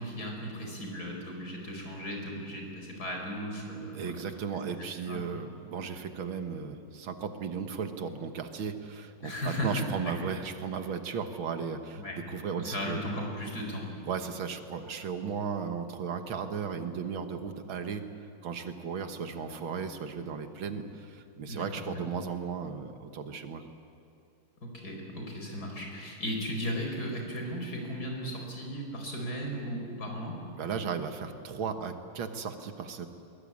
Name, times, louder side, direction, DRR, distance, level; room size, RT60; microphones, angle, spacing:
voice 1, 0.0-4.1 4.5-4.6 5.1-5.2 9.2-9.9 10.2-10.3 11.9-12.1 12.6-13.9 21.5-22.0 24.6-30.4, equal, 45° left, 1 dB, 5.1 m, -36 dB
voice 2, 3.9-13.1 14.1-18.0 18.4-23.6 30.6-33.1, right 6 dB, 75° right, 7 dB, 2.1 m, -35 dB
22.0 x 21.5 x 8.6 m, 2.6 s
omnidirectional pair, 2.2 m